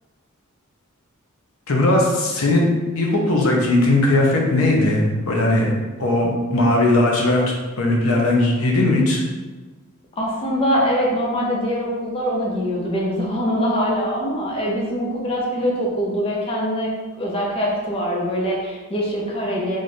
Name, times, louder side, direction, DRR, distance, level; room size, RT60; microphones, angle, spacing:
voice 1, 1.7-2.7 2.9-5.7 6.0-9.2, left 2 dB, 70° left, -1 dB, 0.7 m, -18 dB
voice 2, 10.2-16.9 17.2-19.8, equal, 25° left, -3 dB, 0.6 m, -23 dB
3.1 x 2.5 x 4.1 m, 1.3 s
head